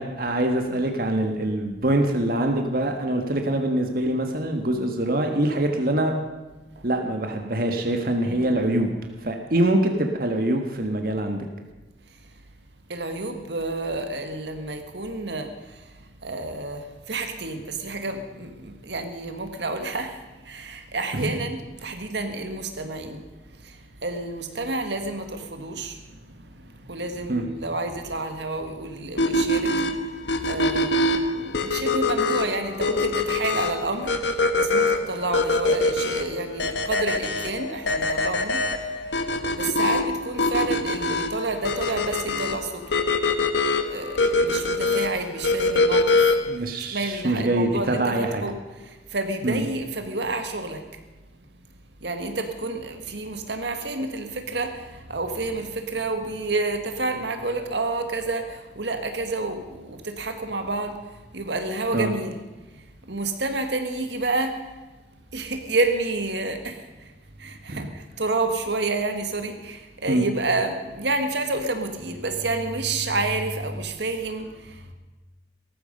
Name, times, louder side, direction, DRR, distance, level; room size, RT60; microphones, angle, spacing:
voice 1, 0.0-6.1 6.8-8.9 9.2-11.4 21.1-21.3 27.3-27.4 46.5-48.4 49.4-49.6 61.9-62.1 67.7-67.9 70.1-70.3, right 1 dB, 55° right, 4 dB, 1.6 m, -24 dB
voice 2, 8.2-8.6 12.9-15.8 16.2-20.2 20.5-23.2 23.6-26.0 26.3-29.8 30.5-38.6 39.5-42.9 43.9-46.3 46.8-48.6 48.8-50.9 52.0-61.0 61.3-62.4 63.1-64.6 65.3-67.1 67.4-74.9, right 2 dB, 80° right, 6 dB, 1.8 m, -29 dB
sound 1, 29.2-46.6, left 2 dB, 85° left, 1.4 m, -24 dB
18.0 x 14.5 x 5.4 m, 1.2 s
head